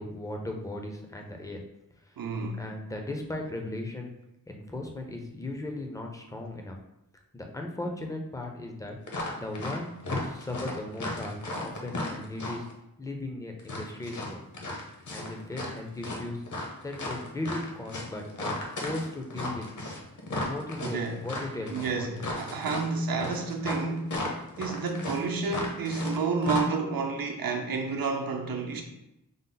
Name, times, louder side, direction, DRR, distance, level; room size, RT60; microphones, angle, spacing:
voice 1, 0.0-1.6 2.1-2.2 2.6-4.1 4.5-6.8 7.3-9.0 9.4-12.6 13.0-14.4 15.1-16.4 16.8-19.6 20.4-22.1, left 2 dB, 10° left, 0.4 m, -37 dB
voice 2, 2.2-2.6 20.8-21.2 21.7-28.8, right 4 dB, 75° right, 0.7 m, -30 dB
sound 1, 9.1-9.8 10.0-12.7 13.6-15.8 16.0-26.2 26.4-26.6, left 2 dB, 55° left, 0.9 m, -35 dB
5.3 x 2.0 x 3.8 m
wide cardioid pair, 170°, 36 cm